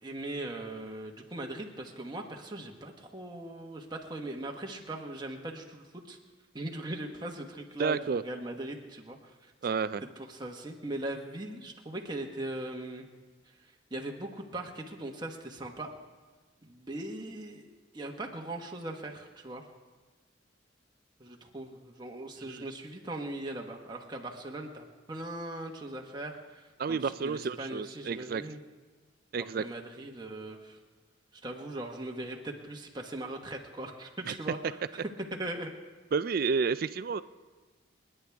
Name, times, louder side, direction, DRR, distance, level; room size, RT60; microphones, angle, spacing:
voice 1, 0.0-6.2 6.5-9.5 10.2-13.1 13.6-15.9 16.6-19.6 21.2-28.6 29.4-30.8 31.4-35.1 35.4-35.7, right 1 dB, 20° right, 1 dB, 1.3 m, -40 dB
voice 2, 7.8-8.2 9.6-10.0 22.4-22.6 26.8-28.4 29.3-29.6 34.3-34.4 36.1-37.2, right 5 dB, 50° right, 14 dB, 0.3 m, -30 dB
29.5 x 10.0 x 3.5 m, 1.3 s
head